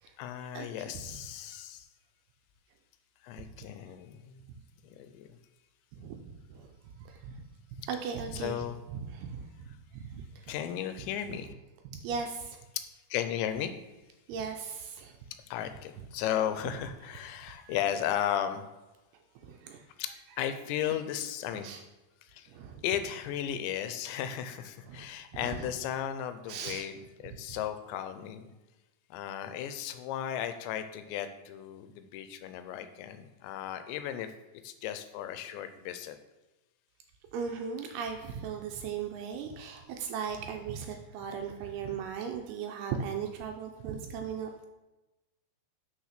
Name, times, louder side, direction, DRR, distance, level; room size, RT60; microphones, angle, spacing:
voice 1, 0.2-1.9 3.2-4.4 4.8-5.4 8.3-8.8 10.5-11.5 12.7-12.9 13.1-13.7 15.5-18.7 20.0-20.1 20.4-21.7 22.2-22.5 22.8-28.5 29.1-34.3 34.6-36.2, left 10 dB, 85° left, 9 dB, 2.9 m, -35 dB
voice 2, 5.9-7.4 7.9-9.7 9.9-10.5 11.3-11.4 11.8-12.6 14.3-15.2 17.4-17.8 19.4-19.9 21.5-21.8 22.5-22.8 24.9-25.7 26.5-26.9 27.5-27.6 37.3-44.7, right 6 dB, 80° right, 4 dB, 2.4 m, -38 dB
6.3 x 6.0 x 5.8 m, 1.1 s
omnidirectional pair, 5.0 m